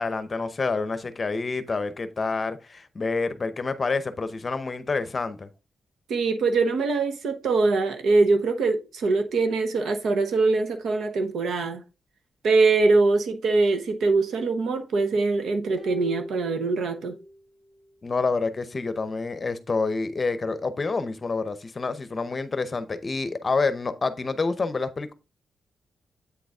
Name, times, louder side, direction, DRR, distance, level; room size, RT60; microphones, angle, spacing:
voice 1, 0.0-5.5 18.0-25.1, left 4 dB, 35° left, 0.7 m, -28 dB
voice 2, 6.1-11.8 12.4-17.2, right 3 dB, 80° right, 0.9 m, -23 dB
sound 1, 15.8-17.4 17.7-17.8, equal, 15° right, 2.3 m, -39 dB
8.2 x 3.9 x 3.5 m
cardioid pair, 105°, 0 cm